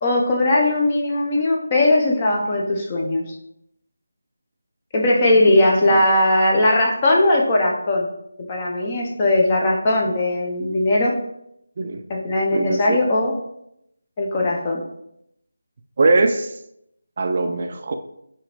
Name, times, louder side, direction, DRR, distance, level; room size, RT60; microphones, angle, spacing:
voice 1, 0.0-3.2 4.9-8.1 8.5-11.1 12.1-13.3 14.2-14.8, left 1 dB, 25° left, -1 dB, 0.7 m, -19 dB
voice 2, 5.4-5.9 11.8-12.0 12.5-13.0 16.0-16.6 17.2-17.9, right 3 dB, 45° right, 6 dB, 0.3 m, -21 dB
4.8 x 2.9 x 3.0 m, 0.79 s
figure-of-eight pair, 165°, 0 cm